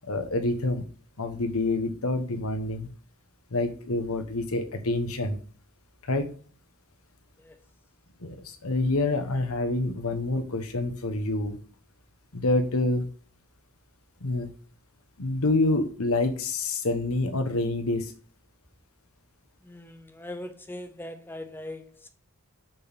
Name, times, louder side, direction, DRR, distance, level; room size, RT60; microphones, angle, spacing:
voice 1, 0.0-0.9 1.2-2.9 3.5-5.4 6.0-6.3 8.2-11.6 12.3-13.1 14.2-14.5 15.2-18.1, left 2 dB, 75° left, 1.1 m, -27 dB
voice 2, 19.6-22.1, left 1 dB, 10° left, 0.6 m, -40 dB
6.6 x 6.1 x 4.1 m
head